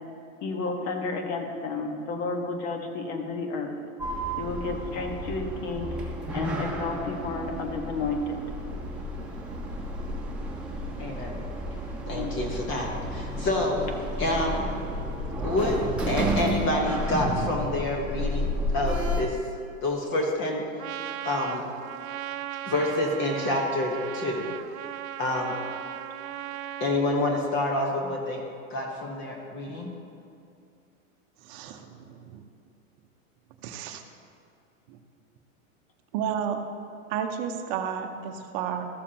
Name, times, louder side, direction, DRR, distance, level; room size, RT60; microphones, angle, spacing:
voice 1, 0.4-3.7 4.4-8.4 12.1-12.4, left 3 dB, 45° left, 3 dB, 1.4 m, -32 dB
Sliding door, 4.0-19.2, equal, 5° right, 1.4 m, -31 dB
voice 2, 11.0-11.4 12.1-13.9 14.2-14.7 15.4-15.8 16.1-18.5 18.7-19.4 19.8-20.6 21.2-21.6 22.7-24.5 25.2-25.6 26.8-28.4 28.7-29.9, left 2 dB, 30° left, 1 dB, 1.2 m, -27 dB
Trumpet, 20.8-27.0, right 11 dB, 80° right, 0.6 m, -37 dB
voice 3, 31.4-32.4 33.6-34.0 34.9-35.0 36.1-36.6 37.1-38.8, right 8 dB, 40° right, 5 dB, 0.8 m, -32 dB
14.0 x 7.2 x 2.9 m, 2.5 s
hypercardioid pair, 130°, 41 cm